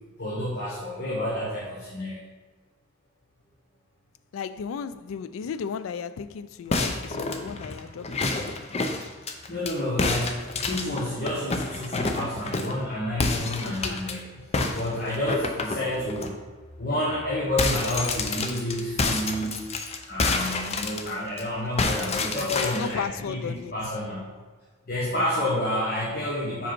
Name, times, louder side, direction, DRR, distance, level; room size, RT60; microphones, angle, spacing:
voice 1, 0.2-2.2 9.5-14.4 14.7-16.4 16.8-19.6 20.0-24.3 24.9-26.7, left 1 dB, 50° left, 1.3 m, -29 dB
voice 2, 4.3-8.6 13.6-14.0 22.4-23.8, left 6 dB, 85° left, 0.3 m, -35 dB
sound 1, 6.7-9.7 10.0-12.8 13.2-14.1 14.5-16.3 16.7-16.8 17.1-21.4 21.8-22.9, left 3 dB, 35° left, 0.5 m, -28 dB
5.4 x 5.0 x 4.5 m
head